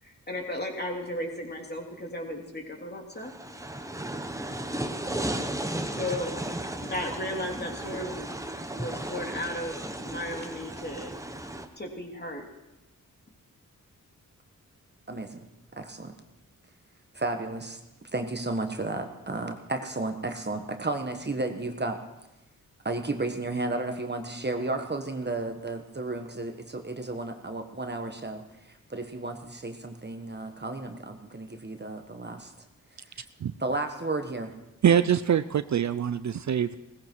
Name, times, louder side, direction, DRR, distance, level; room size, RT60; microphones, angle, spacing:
voice 1, 0.0-3.3 6.0-6.3 6.8-8.2 8.8-9.8 10.0-11.1 11.7-12.4, left 1 dB, 30° left, 1 dB, 3.0 m, -35 dB
sound 1, 3.2-11.7, right 1 dB, 10° right, 1.2 m, -35 dB
voice 2, 15.1-15.5 15.8-16.1 17.1-17.8 18.1-22.0 22.8-32.5 33.1-33.2 33.6-34.5, right 2 dB, 30° right, 6 dB, 1.4 m, -33 dB
voice 3, 34.8-36.8, right 9 dB, 55° right, 13 dB, 0.5 m, -24 dB
17.0 x 15.5 x 4.6 m, 0.96 s
cardioid pair, 65°, 34 cm